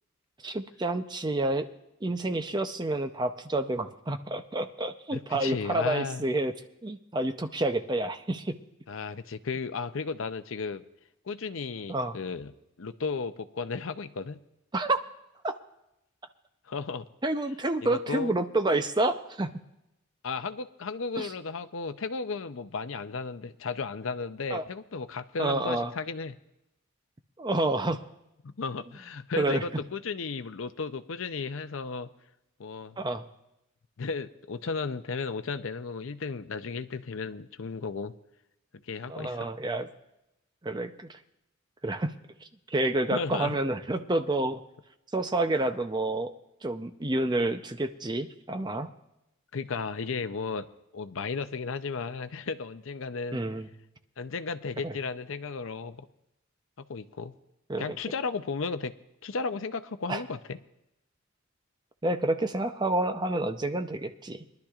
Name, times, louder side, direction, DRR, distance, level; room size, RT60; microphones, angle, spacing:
voice 1, 0.4-1.7 2.0-6.5 6.8-8.6 11.9-12.1 14.7-15.0 15.4-15.5 17.2-19.5 21.2-21.3 24.5-24.6 25.4-25.9 27.4-28.0 29.4-29.6 33.0-33.2 39.1-39.9 40.6-41.2 41.8-42.1 42.7-44.6 45.1-46.3 46.6-48.9 53.3-53.7 54.8-54.9 57.7-58.0 60.1-60.2 62.0-64.4, right 2 dB, 20° right, 8 dB, 0.6 m, -29 dB
voice 2, 5.1-6.3 8.9-10.8 11.3-14.4 16.7-17.1 17.8-18.3 20.2-26.4 28.4-32.1 32.6-33.0 34.0-38.1 38.8-39.5 43.1-43.6 49.5-50.7 50.9-53.4 54.2-56.1 56.8-57.3 57.8-58.9 59.2-60.6, left 4 dB, 70° left, 10 dB, 0.6 m, -34 dB
22.5 x 11.5 x 2.4 m, 0.90 s
head